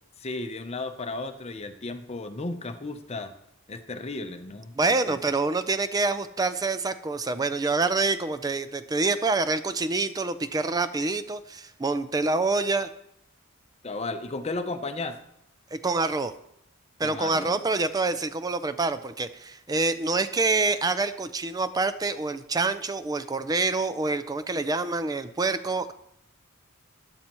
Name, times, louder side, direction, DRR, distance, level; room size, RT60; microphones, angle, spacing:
voice 1, 0.2-3.3 3.7-5.2 13.8-15.2 17.0-17.5, left 2 dB, 30° left, 7 dB, 0.7 m, -34 dB
voice 2, 4.8-12.9 15.7-16.3 17.0-25.9, right 3 dB, 15° right, 12 dB, 0.4 m, -26 dB
13.0 x 9.7 x 3.0 m, 0.78 s
head